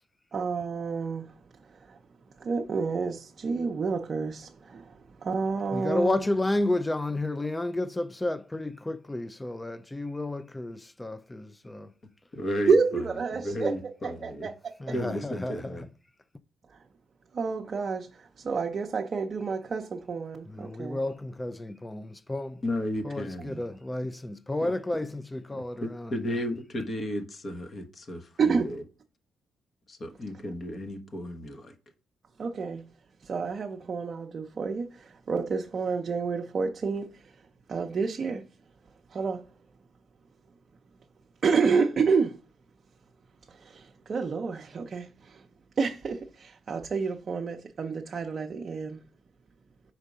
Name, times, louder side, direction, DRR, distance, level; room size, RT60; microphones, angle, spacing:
voice 1, 0.3-1.3 1.7-2.0 2.4-6.2 12.7-13.7 14.0-14.7 16.7-16.8 17.3-21.0 23.5-23.6 28.4-28.7 32.4-32.8 33.2-37.3 37.7-38.4 39.1-39.4 41.4-42.4 43.5-45.4 45.8-49.0, right 5 dB, 45° right, 0.6 m, -29 dB
voice 2, 5.7-11.9 14.8-15.7 20.5-22.6 23.0-26.1, left 2 dB, 15° left, 0.4 m, -31 dB
voice 3, 12.3-13.1 13.3-14.5 14.9-15.9 22.6-23.6 24.6-24.7 25.5-28.8 29.9-31.7, left 1 dB, 40° left, 1.1 m, -34 dB
4.9 x 4.5 x 5.3 m
cardioid pair, 90°, 0 cm